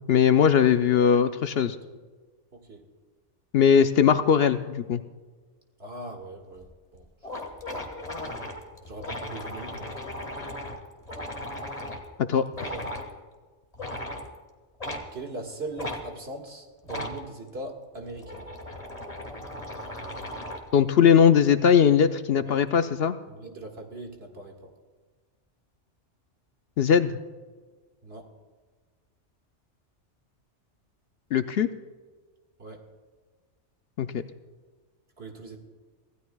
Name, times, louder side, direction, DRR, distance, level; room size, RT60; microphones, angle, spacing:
voice 1, 0.1-1.8 3.5-5.0 12.3-12.4 20.7-23.1 26.8-27.2 31.3-31.7 34.0-34.2, left 7 dB, 65° left, 10 dB, 0.8 m, -20 dB
voice 2, 2.5-2.8 5.8-7.1 8.8-10.1 12.6-12.8 15.1-18.5 22.4-22.6 23.3-24.7 28.0-28.3 32.6-32.9 35.2-35.6, right 2 dB, 60° right, 2 dB, 2.0 m, -40 dB
sound 1, 6.6-6.7 6.9-7.0 7.2-12.1 12.5-13.1 13.7-14.3 14.8-15.1 15.8-16.0 16.8-17.2 17.9-20.7, left 1 dB, 35° left, 1.6 m, -36 dB
25.0 x 15.5 x 2.3 m, 1.4 s
omnidirectional pair, 1.2 m